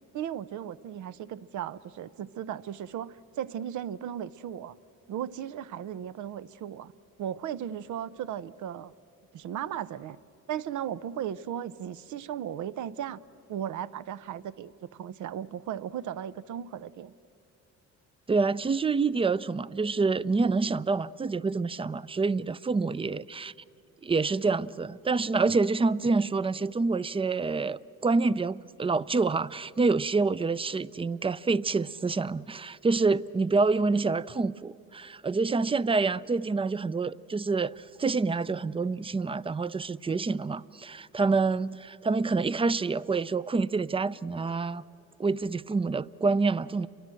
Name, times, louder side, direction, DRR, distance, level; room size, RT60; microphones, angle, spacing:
voice 1, 0.1-4.7 5.1-6.9 7.2-8.9 9.3-10.2 10.5-13.2 13.5-17.1, right 10 dB, 75° right, 0.8 m, -36 dB
voice 2, 18.3-23.5 24.0-44.8 45.2-46.9, right 4 dB, 20° right, 0.5 m, -27 dB
30.0 x 23.5 x 7.6 m
cardioid pair, 90°, 30 cm